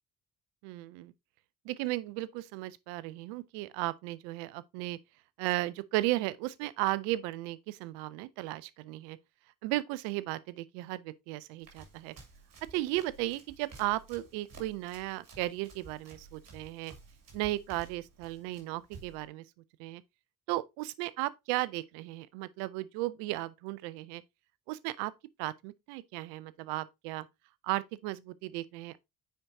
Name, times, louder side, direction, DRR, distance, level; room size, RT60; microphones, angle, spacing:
voice 1, 0.6-1.1 1.6-5.0 5.4-9.2 9.6-12.1 12.7-16.9 17.3-19.4 19.8-20.0 20.5-24.2 24.7-25.1 25.4-27.3 27.6-29.0, right 18 dB, 80° right, 0.5 m, -35 dB
Run, 11.6-19.3, right 4 dB, 55° right, 2.5 m, -53 dB
9.4 x 4.6 x 2.6 m
hypercardioid pair, 45°, 39 cm